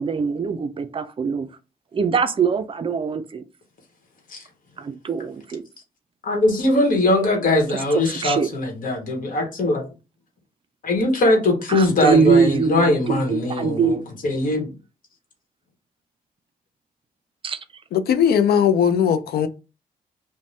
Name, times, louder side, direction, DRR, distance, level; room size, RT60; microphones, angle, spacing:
voice 1, 0.0-1.5 1.9-3.4 4.8-5.6 7.7-8.5 11.7-14.0 17.4-17.6, right 5 dB, 35° right, 0.4 m, -22 dB
voice 2, 6.2-9.8 10.8-14.0 14.2-14.7, left 1 dB, 60° left, 1.1 m, -21 dB
voice 3, 17.9-19.5, left 8 dB, 80° left, 0.4 m, -18 dB
2.6 x 2.1 x 3.2 m
cardioid pair, 85°, 16 cm